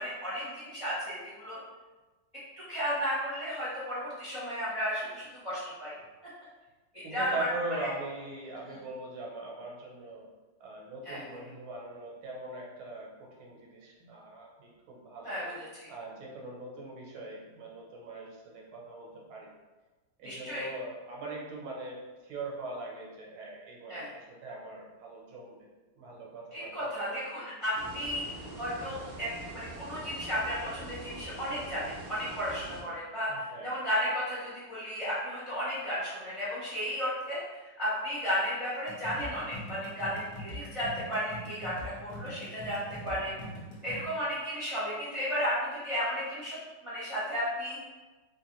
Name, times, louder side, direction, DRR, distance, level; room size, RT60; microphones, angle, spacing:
voice 1, 0.0-1.6 2.6-5.9 6.9-7.5 7.8-7.9 8.6-8.7 11.0-11.2 15.2-15.9 20.2-20.6 23.9-24.1 26.5-28.2 28.6-43.3 43.8-46.6 46.8-47.8, equal, 25° right, -10 dB, 0.7 m, -34 dB
voice 2, 7.0-10.3 10.6-15.5 15.9-19.5 20.2-25.7 25.9-27.3 33.3-33.8 43.0-43.3, right 2 dB, 90° right, -2 dB, 1.7 m, -41 dB
sound 1, 27.7-32.8, right 2 dB, 70° right, 0.8 m, -44 dB
sound 2, 38.9-44.0, equal, 55° left, 0.7 m, -43 dB
3.3 x 3.2 x 2.9 m, 1.2 s
omnidirectional pair, 2.3 m